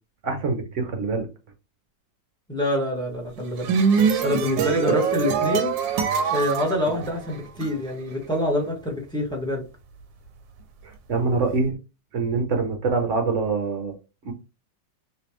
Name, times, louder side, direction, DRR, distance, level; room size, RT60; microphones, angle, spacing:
voice 1, 0.2-1.3 4.8-5.0 6.9-7.0 10.8-11.7 12.1-13.9 14.2-14.3, right 4 dB, 60° right, 4 dB, 0.8 m, -25 dB
voice 2, 2.5-3.7 4.2-5.7 6.3-9.6, left 1 dB, 5° left, 0 dB, 0.7 m, -26 dB
sound 1, 3.4-7.7, right 6 dB, 85° right, 1.4 m, -23 dB
3.3 x 2.9 x 3.0 m, 0.28 s
omnidirectional pair, 2.0 m